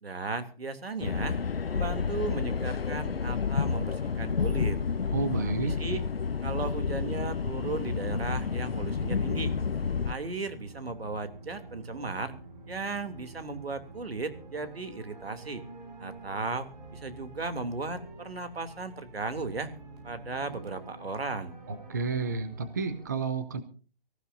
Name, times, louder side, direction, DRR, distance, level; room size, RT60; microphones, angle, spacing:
voice 1, 0.0-1.4 1.7-4.8 5.4-6.0 6.4-9.6 10.0-12.3 12.7-15.6 16.0-19.7 20.0-21.6, right 3 dB, 90° right, 9 dB, 3.0 m, -36 dB
sound 1, 1.0-10.1, left 5 dB, 75° left, 1.1 m, -30 dB
voice 2, 5.1-5.7 21.7-23.6, right 4 dB, 20° right, 12 dB, 0.7 m, -31 dB
sound 2, 7.1-23.1, right 2 dB, 40° right, 6.8 m, -48 dB
24.5 x 15.0 x 2.7 m, 0.39 s
hypercardioid pair, 170°, 30 cm